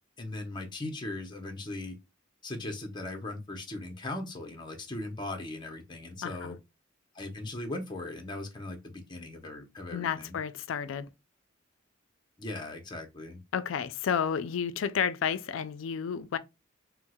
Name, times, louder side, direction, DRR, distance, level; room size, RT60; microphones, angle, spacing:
voice 1, 0.2-2.0 2.4-6.6 7.1-10.4 12.4-13.4, left 2 dB, 20° left, 0.7 m, -39 dB
voice 2, 6.2-6.6 9.9-11.1 13.5-16.4, left 7 dB, 70° left, 0.4 m, -31 dB
4.4 x 2.0 x 2.2 m
head